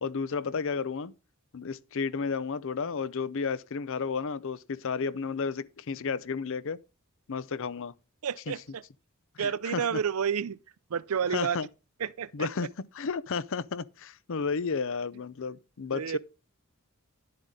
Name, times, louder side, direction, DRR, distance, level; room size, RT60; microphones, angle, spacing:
voice 1, 0.0-1.1 1.5-6.8 7.3-7.9 8.5-8.6 9.4-10.0 11.3-11.7 12.3-12.7 12.9-16.2, left 5 dB, 60° left, 0.6 m, -32 dB
voice 2, 8.2-8.8 9.4-10.6 10.9-11.6 12.0-12.5 15.9-16.2, right 7 dB, 75° right, 0.5 m, -30 dB
10.5 x 7.8 x 3.7 m
head